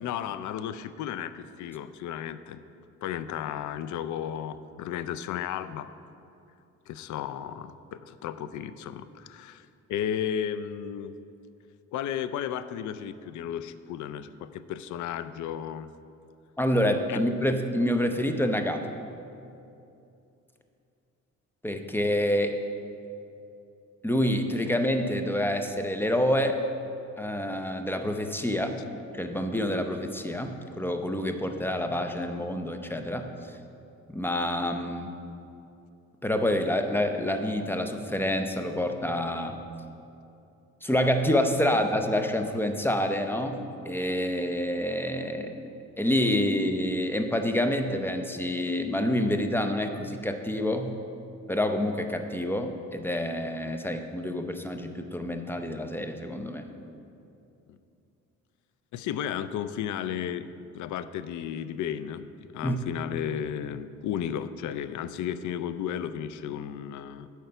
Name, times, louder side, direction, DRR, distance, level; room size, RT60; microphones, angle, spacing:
voice 1, 0.0-2.6 3.0-5.9 6.9-11.2 11.9-15.9 17.1-17.2 58.9-60.5 60.7-67.3, left 9 dB, 70° left, 13 dB, 0.5 m, -34 dB
voice 2, 16.6-18.9 21.6-22.6 24.0-26.6 27.2-28.8 29.1-33.3 34.1-35.2 36.2-39.6 40.8-45.6 46.0-50.9 51.5-56.7 62.6-62.8, left 1 dB, 5° left, 6 dB, 0.6 m, -27 dB
9.2 x 4.6 x 6.7 m, 2.7 s
cardioid pair, 90°, 30 cm